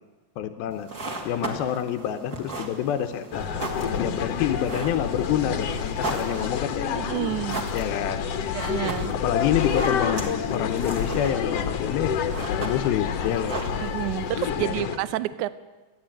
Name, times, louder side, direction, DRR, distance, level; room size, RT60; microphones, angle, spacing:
voice 1, 0.4-0.9 1.3-3.5 4.0-7.0 7.7-8.3 9.1-13.6 14.6-14.8, left 10 dB, 85° left, 8 dB, 2.7 m, -28 dB
sound 1, 0.7-14.3, right 2 dB, 30° right, 2.4 m, -37 dB
sound 2, 3.3-15.0, left 7 dB, 60° left, 1.7 m, -28 dB
voice 2, 6.9-7.6 8.5-9.1 13.8-15.5, right 15 dB, 75° right, 16 dB, 1.8 m, -29 dB
29.0 x 10.0 x 8.9 m, 1.2 s
omnidirectional pair, 4.2 m